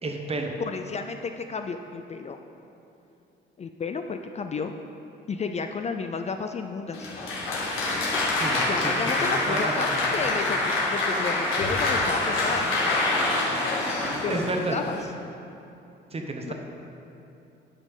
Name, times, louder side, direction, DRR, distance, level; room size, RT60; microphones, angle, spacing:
voice 1, 0.0-0.5 8.3-8.9 9.2-10.0 14.2-14.8 16.1-16.5, right 2 dB, 30° right, 2 dB, 1.1 m, -31 dB
voice 2, 0.7-2.4 3.6-4.7 5.3-7.1 8.7-9.9 10.1-12.7 14.2-15.0 16.5-16.6, left 5 dB, 35° left, 6 dB, 0.4 m, -32 dB
Applause, 6.9-15.0, left 2 dB, 85° left, 1.8 m, -26 dB
9.4 x 5.3 x 5.4 m, 2.8 s
cardioid pair, 90°, 20 cm